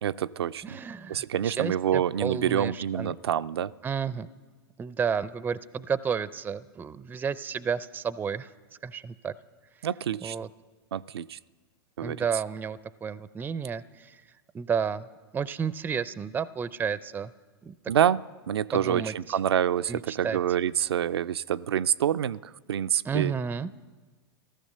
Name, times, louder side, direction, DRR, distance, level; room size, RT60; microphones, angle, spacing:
voice 1, 0.0-0.8 1.1-3.7 9.8-10.4 10.9-11.4 12.0-12.2 17.9-23.3, right 9 dB, 85° right, 13 dB, 0.4 m, -27 dB
voice 2, 0.6-3.1 3.8-4.3 4.8-8.5 8.8-9.3 9.8-9.9 10.2-10.5 12.0-14.2 14.5-15.1 15.3-17.3 17.6-17.9 18.7-19.4 19.9-20.4 23.0-23.7, right 6 dB, 15° right, 17 dB, 0.4 m, -32 dB
15.0 x 13.5 x 6.6 m, 1.4 s
hypercardioid pair, 110°, 13 cm